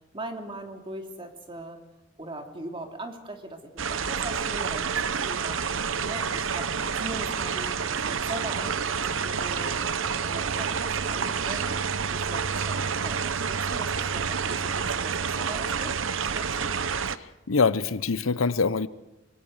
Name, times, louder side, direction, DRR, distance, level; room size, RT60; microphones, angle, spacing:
voice 1, 0.1-1.8 2.2-5.6 6.0-9.8 10.2-11.8 12.1-16.7, right 1 dB, 25° right, 2.9 m, -40 dB
sound 1, 3.8-17.2, right 6 dB, 70° right, 0.8 m, -28 dB
voice 2, 17.1-18.9, left 4 dB, 90° left, 0.8 m, -25 dB
25.5 x 23.0 x 6.5 m
head